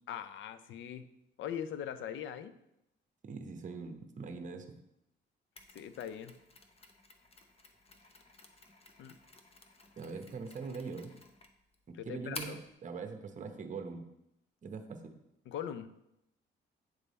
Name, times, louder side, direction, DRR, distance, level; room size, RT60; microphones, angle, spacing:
voice 1, 0.1-1.0 1.4-2.5 5.7-6.4 9.0-9.2 12.0-12.6 15.5-15.9, left 9 dB, 70° left, 12 dB, 0.5 m, -41 dB
voice 2, 3.2-4.8 10.0-11.1 11.9-14.0 14.6-15.1, right 4 dB, 40° right, 7 dB, 0.8 m, -42 dB
Mechanisms, 5.6-12.7, left 3 dB, 30° left, 0.7 m, -52 dB
8.2 x 3.3 x 4.1 m, 0.83 s
cardioid pair, 90°, 20 cm